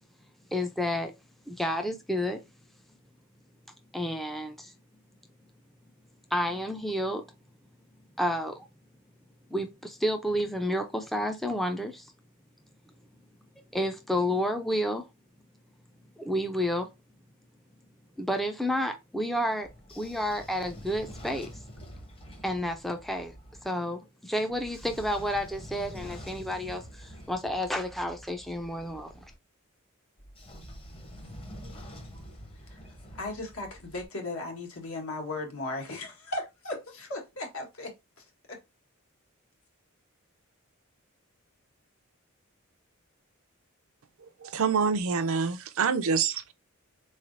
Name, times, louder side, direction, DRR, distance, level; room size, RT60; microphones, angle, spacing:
voice 1, 0.5-1.1 1.5-2.4 3.9-4.7 6.3-7.2 8.2-8.7 9.5-12.1 13.7-15.1 16.2-16.9 18.2-19.7 20.0-21.5 22.4-23.3 23.6-29.1, equal, ahead, 0.4 m, -30 dB
Train / Sliding door, 19.6-23.7 24.5-29.3 30.2-34.1, equal, 25° left, 0.8 m, -46 dB
voice 2, 33.1-37.9 38.2-38.6, left 2 dB, 75° left, 1.4 m, -37 dB
voice 3, 44.4-46.5, right 6 dB, 70° right, 0.5 m, -26 dB
3.9 x 3.2 x 2.5 m
head